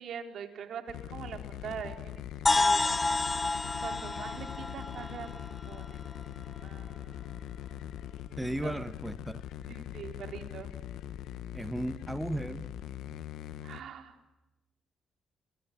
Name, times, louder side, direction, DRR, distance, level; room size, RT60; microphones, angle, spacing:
voice 1, 0.0-2.2 2.5-3.4 3.8-5.4 5.7-6.0 6.6-7.4 8.6-8.7 9.7-10.7 13.6-14.3, right 7 dB, 65° right, 6 dB, 4.3 m, -43 dB
sound 1, 0.9-13.8, left 11 dB, 85° left, 1.3 m, -42 dB
sound 2, 2.5-6.2, left 3 dB, 20° left, 0.9 m, -30 dB
voice 2, 8.4-9.4 11.5-12.7, right 1 dB, 10° right, 11 dB, 1.1 m, -35 dB
29.5 x 22.5 x 9.0 m, 1.0 s
cardioid pair, 90°, 0 cm